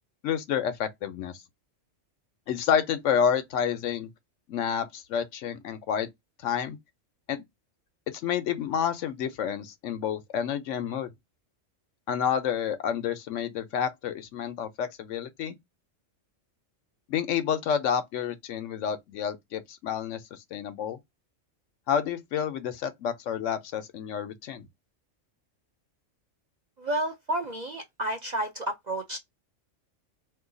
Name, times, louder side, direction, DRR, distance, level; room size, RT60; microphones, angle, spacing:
voice 1, 0.2-1.4 2.5-4.1 4.5-6.1 6.4-6.8 7.3-7.4 8.1-11.1 12.1-15.6 17.1-21.0 21.9-24.7, left 8 dB, 75° left, 1.0 m, -29 dB
voice 2, 26.8-29.2, right 1 dB, 55° right, 0.5 m, -31 dB
2.7 x 2.3 x 3.7 m
omnidirectional pair, 1.3 m